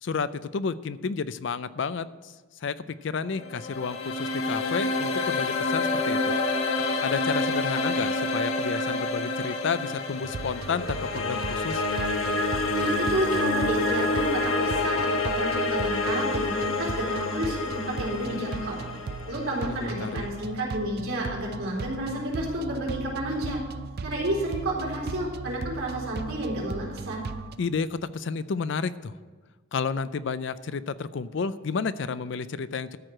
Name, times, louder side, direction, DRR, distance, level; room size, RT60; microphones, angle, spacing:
voice 1, 0.0-2.3 2.6-6.3 7.0-11.8 19.6-20.3 27.6-29.1 29.7-33.0, left 5 dB, 60° left, 15 dB, 0.4 m, -31 dB
sound 1, 3.3-20.4, left 2 dB, 75° left, 1.1 m, -28 dB
sound 2, 10.2-27.6, right 4 dB, 50° right, 0.4 m, -38 dB
voice 2, 12.7-18.8 19.3-23.6 24.0-27.2, right 1 dB, 80° right, -4 dB, 4.0 m, -31 dB
13.5 x 4.8 x 7.6 m, 1.4 s
head